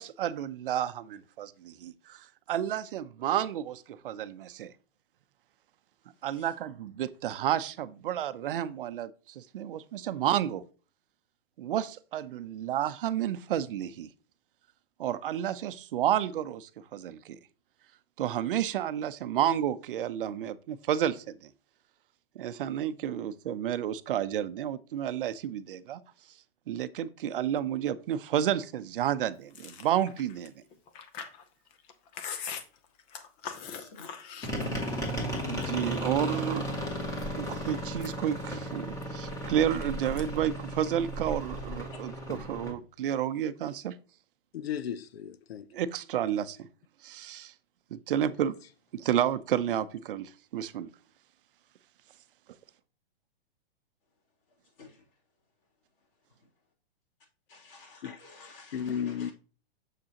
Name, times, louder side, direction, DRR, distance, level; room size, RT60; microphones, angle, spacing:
voice 1, 0.0-4.7 6.2-10.6 11.6-14.1 15.0-17.4 18.2-21.5 22.4-26.0 26.7-30.5 35.3-36.7 37.3-44.0 45.7-46.7 47.0-47.5 47.9-48.5 48.9-50.9, right 10 dB, 60° right, 0.7 m, -31 dB
Chewing mastication, 29.5-35.0 35.3-36.4 36.9-37.5 37.9-39.9 40.2-40.5 40.8-41.6, left 7 dB, 25° left, 0.7 m, -43 dB
voice 2, 33.7-34.1 54.8-55.0 57.5-59.3, left 3 dB, 60° left, 3.1 m, -52 dB
sound 1, 34.4-42.7, equal, 10° left, 1.8 m, -35 dB
voice 3, 44.5-45.7 58.0-58.2 58.7-59.3, left 8 dB, 75° left, 0.7 m, -34 dB
6.8 x 6.3 x 2.9 m
hypercardioid pair, 145°, 31 cm